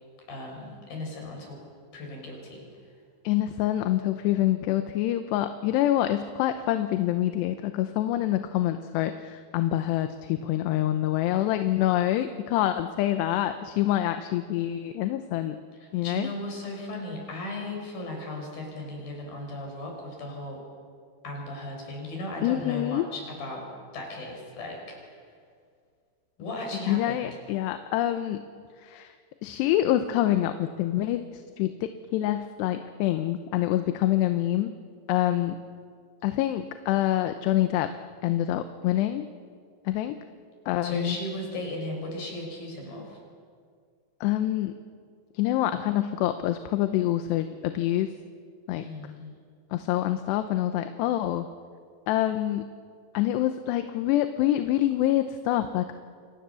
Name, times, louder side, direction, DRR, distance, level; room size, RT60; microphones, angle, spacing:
voice 1, 0.3-1.6 1.9-2.7 15.8-20.6 21.2-23.7 23.9-25.2 26.4-27.3 40.8-43.2 48.8-49.3, left 1 dB, 60° left, 1 dB, 7.7 m, -36 dB
voice 2, 3.2-15.6 15.9-16.3 22.4-23.1 26.9-28.4 28.8-29.1 29.4-34.7 35.1-35.6 36.2-37.9 38.2-39.3 39.9-40.2 40.7-41.2 44.2-44.8 45.3-48.1 48.7-48.9 49.7-51.5 52.1-52.7 53.1-55.9, left 13 dB, 80° left, 8 dB, 3.0 m, -26 dB
28.5 x 26.0 x 7.0 m, 2.1 s
omnidirectional pair, 4.9 m